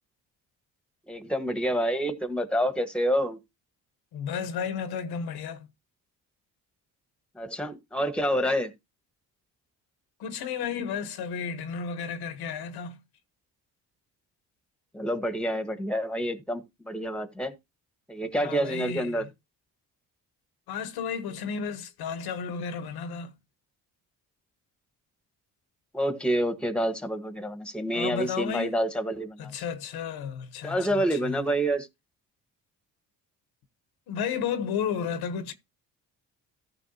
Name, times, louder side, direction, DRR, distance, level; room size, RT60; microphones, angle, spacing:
voice 1, 1.1-3.4 7.4-8.7 14.9-17.5 18.1-19.3 25.9-29.5 30.6-31.9, equal, 5° left, 1.3 m, -28 dB
voice 2, 4.1-5.7 10.2-13.0 18.4-19.2 20.7-23.3 27.9-28.8 29.4-31.4 34.1-35.5, left 7 dB, 80° left, 1.2 m, -33 dB
14.0 x 5.9 x 2.8 m
cardioid pair, 75°, 37 cm